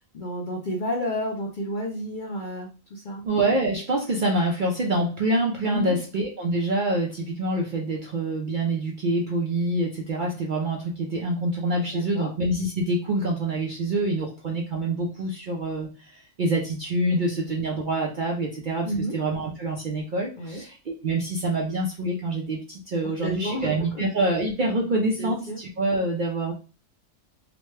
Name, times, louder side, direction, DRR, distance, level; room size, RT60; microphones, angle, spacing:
voice 1, 0.1-3.2 5.7-6.0 11.9-12.3 18.8-19.1 20.4-20.6 23.2-24.0 25.2-25.6, equal, 55° left, 0 dB, 0.5 m, -31 dB
voice 2, 3.2-26.5, right 2 dB, 60° right, -1 dB, 0.5 m, -26 dB
2.9 x 2.1 x 3.1 m, 0.34 s
omnidirectional pair, 1.4 m